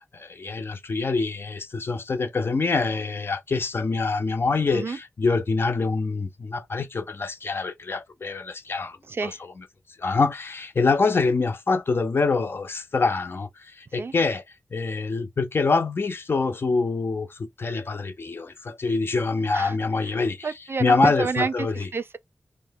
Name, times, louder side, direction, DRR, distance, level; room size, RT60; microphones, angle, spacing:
voice 1, 0.1-9.0 9.2-9.3 10.0-14.4 14.7-20.5 20.8-21.9, left 4 dB, 50° left, 0.5 m, -25 dB
voice 2, 9.1-9.4 14.0-14.1 19.5-19.8 20.0-22.2, right 4 dB, 50° right, 0.4 m, -29 dB
2.6 x 2.2 x 3.4 m
wide cardioid pair, 85°, 5 cm